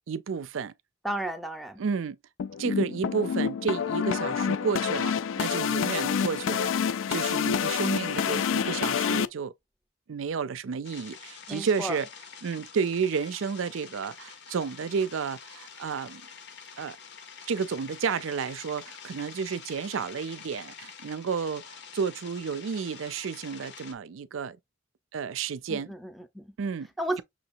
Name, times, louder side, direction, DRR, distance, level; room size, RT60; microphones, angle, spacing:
voice 1, 0.1-0.7 1.8-2.2 2.6-6.7 7.1-9.5 10.1-12.1 12.4-16.2 16.8-17.0 17.5-24.6 25.1-25.9 26.6-26.9, right 6 dB, 85° right, 0.4 m, -31 dB
voice 2, 1.0-1.8 11.5-12.0 25.7-26.5 27.0-27.2, right 1 dB, ahead, 0.6 m, -33 dB
sound 1, 2.4-9.3, left 7 dB, 80° left, 0.3 m, -28 dB
sound 2, 10.8-23.9, left 7 dB, 60° left, 0.8 m, -47 dB
6.1 x 2.9 x 2.5 m
head